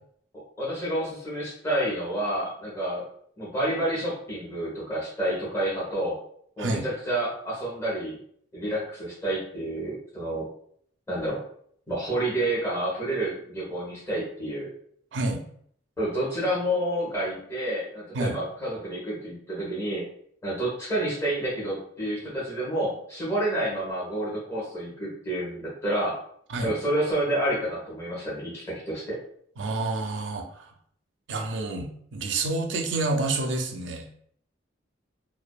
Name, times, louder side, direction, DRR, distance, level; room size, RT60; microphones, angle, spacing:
voice 1, 0.6-3.0 3.4-6.2 6.6-8.2 8.5-10.5 11.1-11.4 11.9-14.7 16.0-20.0 20.4-26.1 26.6-29.2, right 1 dB, 15° left, -7 dB, 0.9 m, -29 dB
voice 2, 15.1-15.4 18.1-18.4 26.5-26.7 29.6-30.7 31.3-34.1, right 2 dB, 75° right, 4 dB, 0.4 m, -28 dB
2.5 x 2.1 x 2.2 m, 0.64 s
head